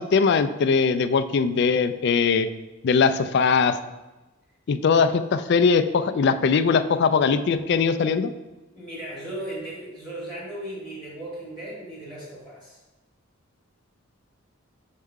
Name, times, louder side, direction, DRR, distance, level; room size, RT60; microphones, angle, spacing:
voice 1, 0.0-2.5 2.8-3.8 4.7-8.3, left 5 dB, 50° left, 10 dB, 0.3 m, -21 dB
voice 2, 8.7-12.8, right 1 dB, 20° right, -6 dB, 2.0 m, -36 dB
6.5 x 4.6 x 3.6 m, 1.1 s
head